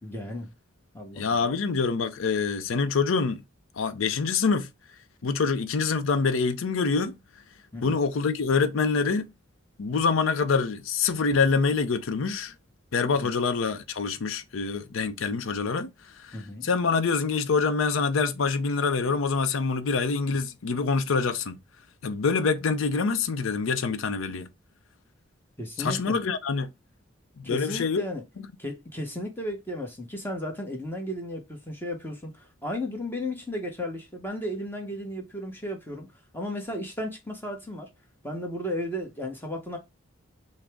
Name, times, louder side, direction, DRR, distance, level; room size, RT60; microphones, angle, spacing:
voice 1, 0.0-0.5 0.9-1.4 7.7-8.0 13.2-13.3 16.3-16.6 25.6-26.2 27.4-28.2 28.6-36.1 36.3-37.9 38.2-39.8, left 1 dB, 10° left, 1.0 m, -34 dB
voice 2, 1.1-3.4 3.8-4.7 5.2-7.2 7.8-9.3 9.8-12.5 12.9-15.9 16.2-16.4 16.6-21.6 22.0-24.5 25.8-26.7 27.4-28.0, left 4 dB, 80° left, 0.5 m, -25 dB
6.1 x 2.1 x 3.4 m
head